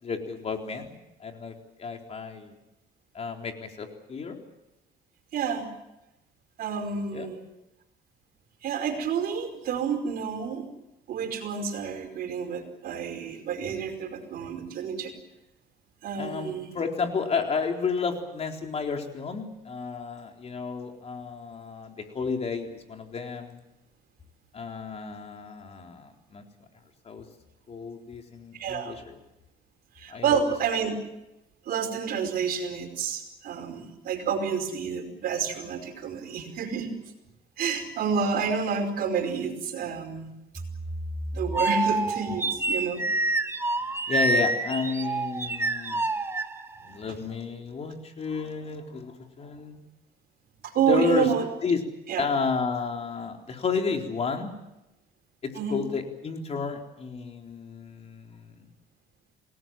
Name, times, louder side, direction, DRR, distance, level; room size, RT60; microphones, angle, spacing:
voice 1, 0.0-2.5 3.1-4.4 7.1-7.3 16.2-23.6 24.5-26.4 27.0-27.3 27.7-29.2 30.1-30.4 44.1-46.0 46.8-49.8 50.9-51.3 51.6-51.8 52.2-54.5 55.4-58.7, left 5 dB, 40° left, 3 dB, 3.9 m, -31 dB
voice 2, 5.3-5.7 6.6-7.4 8.6-10.7 11.1-15.1 16.0-16.7 28.5-29.0 30.0-31.0 31.7-36.9 37.6-40.3 41.3-43.1 47.1-47.2 50.6-51.5 52.1-52.3 55.5-55.8, right 6 dB, 65° right, 6 dB, 5.1 m, -29 dB
sound 1, 40.6-46.9, right 2 dB, 15° right, 1.5 m, -28 dB
28.5 x 18.5 x 7.6 m, 0.93 s
cardioid pair, 110°, 17 cm